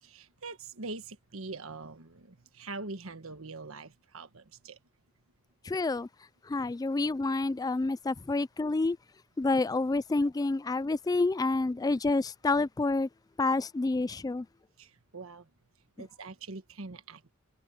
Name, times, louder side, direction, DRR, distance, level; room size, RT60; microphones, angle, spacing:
voice 1, 0.0-4.8 14.8-15.5 16.0-17.3, right 3 dB, 85° right, 1.4 m, -43 dB
voice 2, 5.6-6.1 6.4-9.0 9.4-13.1 13.4-14.5, left 3 dB, 20° left, 0.3 m, -28 dB
head